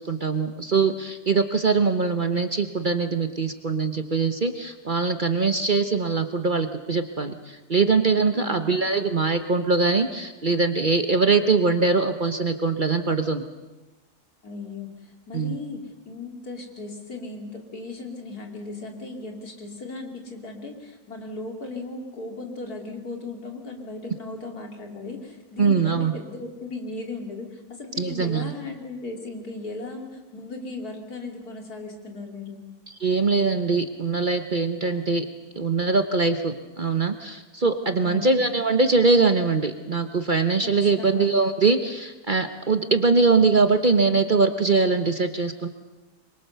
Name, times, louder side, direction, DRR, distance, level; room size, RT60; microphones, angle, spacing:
voice 1, 0.0-7.3 7.7-13.5 15.3-15.5 25.6-26.1 28.0-28.5 33.0-35.3 35.6-45.7, right 4 dB, 35° right, 8 dB, 1.0 m, -22 dB
voice 2, 14.4-14.9 15.3-32.6 38.0-38.4 41.0-41.3, left 3 dB, 75° left, 2 dB, 3.5 m, -36 dB
25.0 x 22.5 x 6.8 m, 1.1 s
omnidirectional pair, 1.6 m